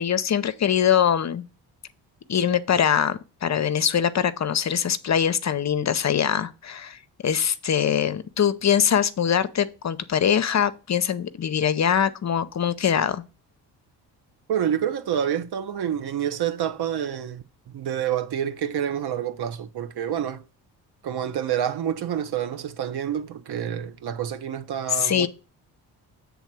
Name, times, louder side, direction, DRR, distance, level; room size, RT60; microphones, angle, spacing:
voice 1, 0.0-1.5 2.3-7.0 7.2-13.2 24.9-25.3, left 8 dB, 40° left, 0.6 m, -23 dB
voice 2, 14.5-20.4 21.0-25.3, right 9 dB, 60° right, 0.8 m, -28 dB
7.1 x 3.6 x 6.1 m
supercardioid pair, 60°, 44 cm